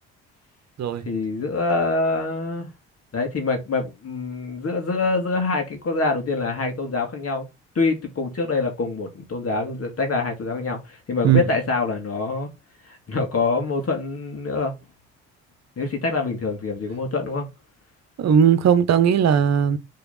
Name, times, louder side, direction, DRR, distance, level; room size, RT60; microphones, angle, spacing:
voice 1, 1.1-2.7 3.1-7.4 7.7-12.5 12.8-14.8 15.8-17.5, left 3 dB, 45° left, 2.4 m, -25 dB
voice 2, 18.2-19.8, right 8 dB, 50° right, 1.1 m, -17 dB
6.9 x 3.8 x 4.0 m
hypercardioid pair, 50°, 34 cm